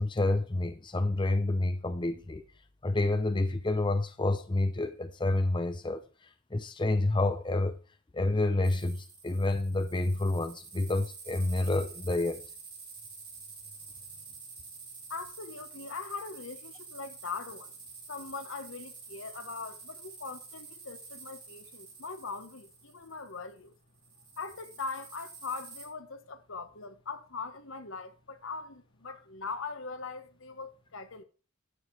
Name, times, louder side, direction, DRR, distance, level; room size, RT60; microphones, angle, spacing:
voice 1, 0.0-2.4 2.8-6.0 6.5-7.8 8.1-12.4, left 2 dB, 25° left, 0.6 m, -29 dB
sound 1, 8.6-23.6 24.0-25.8, right 4 dB, 25° right, 5.1 m, -48 dB
voice 2, 15.1-17.7 18.1-23.7 24.4-31.2, left 4 dB, 70° left, 1.3 m, -41 dB
11.5 x 7.2 x 4.6 m
head